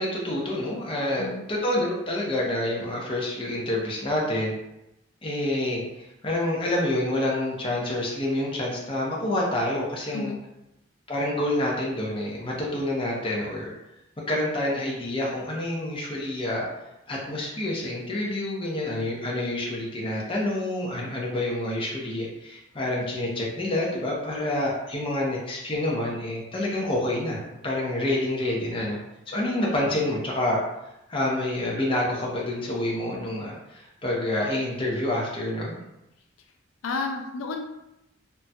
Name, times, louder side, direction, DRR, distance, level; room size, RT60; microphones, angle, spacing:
voice 1, 0.0-4.5 5.2-5.8 6.2-10.4 11.1-13.7 14.3-16.6 17.1-29.0 29.3-30.6 31.1-35.8, left 1 dB, 25° left, -3 dB, 0.7 m, -28 dB
voice 2, 36.8-37.7, left 4 dB, 85° left, 3 dB, 0.4 m, -31 dB
4.0 x 2.3 x 2.2 m, 0.87 s
head